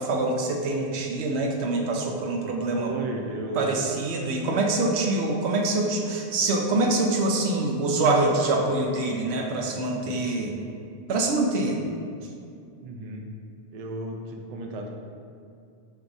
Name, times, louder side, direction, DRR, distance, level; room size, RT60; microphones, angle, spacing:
voice 1, 0.0-2.9 3.6-10.5 11.1-11.8, right 2 dB, 75° right, 1 dB, 0.8 m, -25 dB
voice 2, 2.8-3.8 12.8-13.3 13.7-14.9, right 2 dB, 60° right, 1 dB, 0.4 m, -34 dB
4.5 x 2.6 x 3.9 m, 2.4 s
omnidirectional pair, 1.1 m